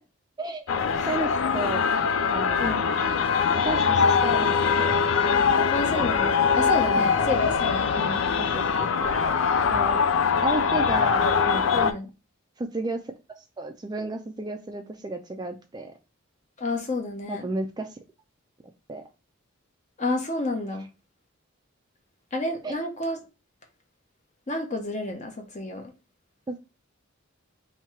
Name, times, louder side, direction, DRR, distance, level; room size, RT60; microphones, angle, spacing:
sound 1, 0.7-11.9, left 6 dB, 70° left, 0.4 m, -23 dB
voice 1, 1.1-1.9 2.3-3.1 3.5-5.0 7.0-7.1 8.4-9.1 9.7-10.0 10.4-11.9 12.6-13.0 13.6-15.9 17.3-18.0 18.9-19.0 22.6-22.8 26.5-26.6, right 2 dB, 20° right, 0.4 m, -33 dB
voice 2, 5.7-8.2 11.7-12.1 16.6-17.5 20.0-20.8 22.3-23.2 24.5-25.9, left 2 dB, 35° left, 0.9 m, -30 dB
3.0 x 2.8 x 4.3 m
head